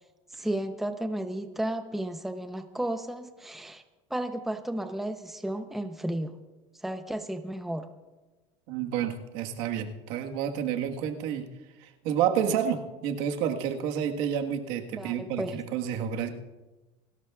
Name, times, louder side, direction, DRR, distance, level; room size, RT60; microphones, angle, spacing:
voice 1, 0.3-3.8 4.1-6.3 6.8-7.9 14.9-15.6, right 1 dB, ahead, 7 dB, 0.7 m, -33 dB
voice 2, 8.7-11.4 11.8-16.3, right 8 dB, 70° right, 4 dB, 1.5 m, -29 dB
28.5 x 12.5 x 2.4 m, 1.2 s
cardioid pair, 135°, 15 cm